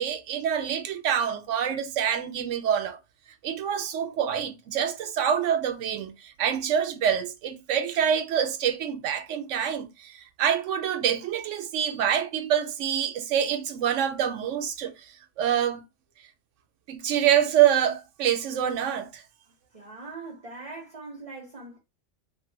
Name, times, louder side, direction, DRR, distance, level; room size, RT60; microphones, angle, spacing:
voice 1, 0.0-3.0 3.4-15.8 16.9-19.2, right 9 dB, 75° right, 0.9 m, -26 dB
voice 2, 19.7-21.8, right 3 dB, 35° right, 0.6 m, -41 dB
3.1 x 2.4 x 2.6 m
omnidirectional pair, 1.3 m